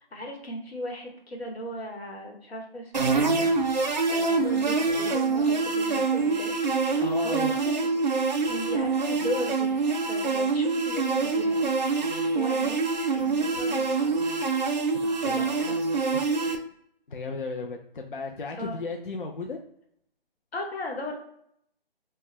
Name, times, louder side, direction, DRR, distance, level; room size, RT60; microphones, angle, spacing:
voice 1, 0.1-3.5 4.1-7.9 8.4-9.8 10.0-11.7 12.1-12.8 13.1-14.3 15.0-16.0 18.6-18.8 20.5-21.2, equal, 85° left, 1 dB, 1.1 m, -37 dB
sound 1, 2.9-16.6, right 4 dB, 50° right, 0.4 m, -25 dB
voice 2, 7.0-7.5 14.9-15.5 16.1-16.4 17.1-19.6, left 3 dB, 60° left, 2 dB, 0.4 m, -35 dB
2.7 x 2.1 x 3.2 m, 0.70 s
hypercardioid pair, 175°, 30 cm